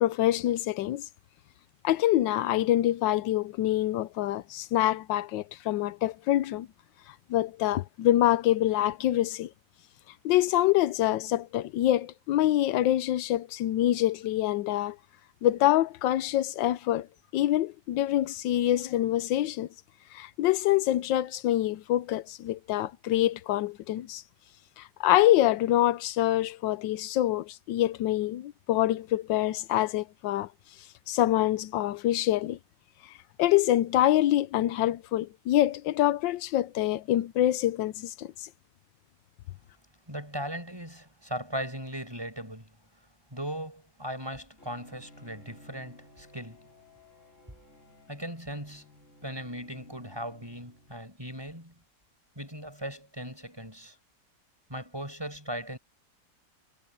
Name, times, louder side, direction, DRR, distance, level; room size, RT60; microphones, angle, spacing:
voice 1, 0.0-1.0 1.8-6.7 7.3-9.5 10.2-15.0 15.4-17.1 17.3-19.7 20.1-24.2 24.8-30.5 31.1-32.6 33.4-38.5, left 13 dB, 85° left, 1.3 m, -25 dB
voice 2, 40.1-42.8 43.3-46.7 48.1-51.8 52.4-54.0 54.7-55.8, equal, 15° right, 7.2 m, -38 dB
Bowed string instrument, 44.6-51.3, left 1 dB, 40° left, 3.9 m, -56 dB
omnidirectional pair, 1.9 m